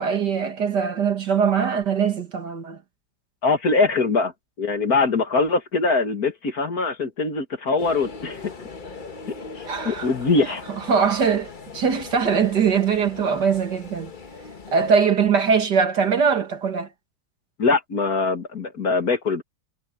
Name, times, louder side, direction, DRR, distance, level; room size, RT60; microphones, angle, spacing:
voice 1, 0.0-2.8 9.7-10.1 10.9-14.1 14.7-16.9, right 6 dB, 60° right, 2.5 m, -21 dB
voice 2, 3.4-4.3 4.6-8.5 9.5-10.6 17.6-19.4, left 3 dB, 50° left, 2.4 m, -22 dB
sound 1, 7.8-14.9, left 4 dB, 30° left, 1.2 m, -39 dB
omnidirectional pair, 2.0 m